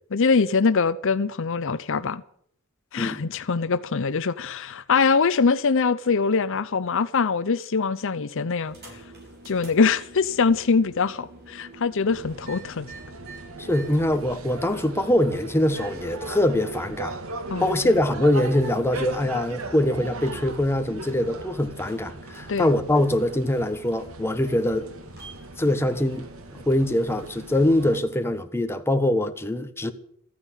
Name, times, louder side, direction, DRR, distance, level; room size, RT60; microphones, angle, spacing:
voice 1, 0.1-2.2 2.9-8.8 9.5-12.9 17.5-17.9 22.5-22.7, left 5 dB, 65° left, 0.7 m, -23 dB
sound 1, 8.6-28.4, right 2 dB, 50° right, 7.0 m, -48 dB
sound 2, 12.1-28.0, right 2 dB, 80° right, 1.7 m, -39 dB
voice 2, 13.6-17.2 17.6-24.9 25.6-26.2 26.5-29.9, left 1 dB, 10° left, 1.2 m, -23 dB
14.5 x 9.5 x 9.8 m
head